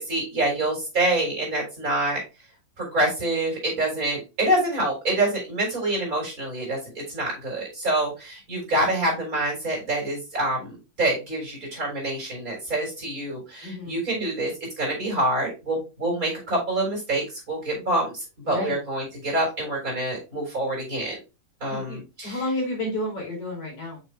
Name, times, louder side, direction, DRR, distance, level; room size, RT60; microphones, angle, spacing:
voice 1, 0.0-2.2 2.8-14.5 14.8-21.1 21.6-22.4, right 1 dB, 25° right, -2 dB, 4.1 m, -26 dB
voice 2, 13.6-14.0 18.4-18.8 21.7-24.0, left 1 dB, 50° left, -2 dB, 3.6 m, -31 dB
6.7 x 6.4 x 2.3 m, 0.27 s
omnidirectional pair, 3.7 m